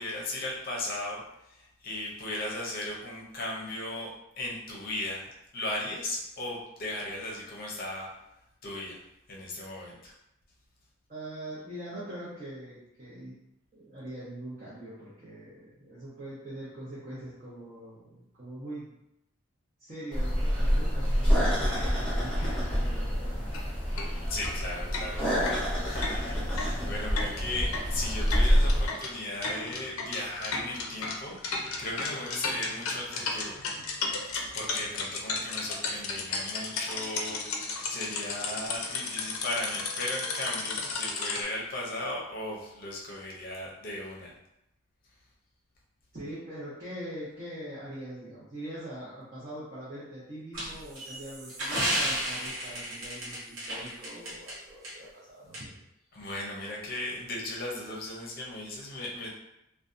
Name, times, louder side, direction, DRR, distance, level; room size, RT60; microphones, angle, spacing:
voice 1, 0.0-4.1 4.4-8.1 8.6-9.0 9.3-10.1 24.3-33.5 34.5-44.3 56.1-59.3, left 1 dB, 45° left, -3 dB, 0.6 m, -37 dB
voice 2, 11.1-13.4 13.7-18.9 19.8-23.5 46.1-55.7, right 1 dB, 35° right, -10 dB, 0.7 m, -42 dB
sound 1, 20.1-28.9, equal, 5° left, 0.7 m, -27 dB
sound 2, 23.5-23.6 24.0-24.1 24.4-24.5 24.9-41.4, left 4 dB, 90° left, 0.4 m, -34 dB
sound 3, 50.5-54.5 54.8-54.9 55.5-55.6, right 1 dB, 70° right, 0.8 m, -32 dB
2.6 x 2.2 x 2.5 m, 0.84 s
head